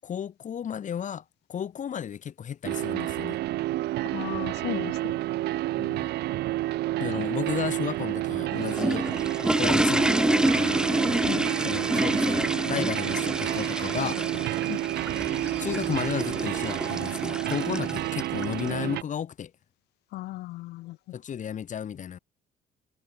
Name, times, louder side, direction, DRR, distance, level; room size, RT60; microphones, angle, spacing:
voice 1, 0.0-3.4 5.8-6.1 7.0-9.1 9.6-10.8 11.6-14.2 15.6-19.5 21.1-22.2, left 8 dB, 45° left, 7.7 m, -33 dB
sound 1, 2.6-19.0, right 16 dB, 80° right, 2.8 m, -30 dB
voice 2, 4.0-5.0 7.2-7.3 11.2-11.4 14.7-14.8 20.1-21.0, left 18 dB, 80° left, 1.1 m, -35 dB
sound 2, 8.4-18.7, right 1 dB, 5° right, 1.1 m, -28 dB
cardioid pair, 110°, 17 cm